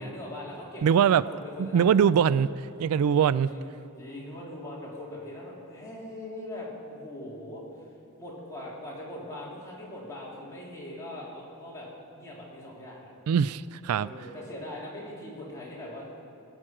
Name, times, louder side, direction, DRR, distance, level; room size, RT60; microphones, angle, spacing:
voice 1, 0.0-1.9 3.1-3.6 4.0-7.9 8.2-13.1 13.9-16.0, left 1 dB, 15° left, -6 dB, 3.3 m, -41 dB
voice 2, 0.8-1.2 1.6-3.5 13.3-14.1, right 8 dB, 80° right, 18 dB, 0.3 m, -22 dB
18.0 x 6.2 x 8.9 m, 2.7 s
head